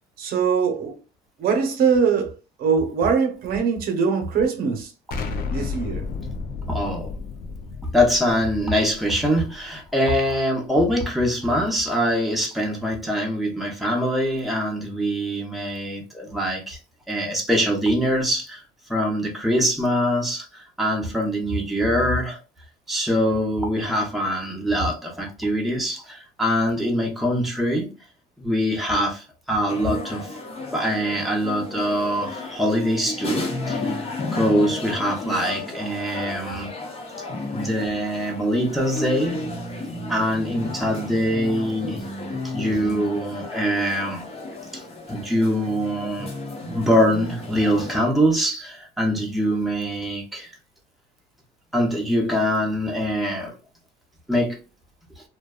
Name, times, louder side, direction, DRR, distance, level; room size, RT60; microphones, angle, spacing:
voice 1, 0.2-1.0 1.4-2.3 2.6-4.9 5.5-6.1, right 6 dB, 65° right, 0.8 m, -22 dB
Explosion, 5.1-9.9, left 4 dB, 65° left, 0.5 m, -33 dB
voice 2, 6.7-7.1 7.9-16.8 17.1-18.6 18.9-22.4 22.9-27.9 28.4-30.3 30.7-34.0 34.3-36.7 37.5-39.4 40.1-42.0 42.4-44.2 44.7-44.8 45.1-46.3 46.7-50.5 51.7-53.5 54.3-54.6, equal, ahead, 0.7 m, -23 dB
sound 1, 29.7-47.9, left 2 dB, 35° left, 0.8 m, -33 dB
2.6 x 2.2 x 2.3 m
cardioid pair, 110°, 17 cm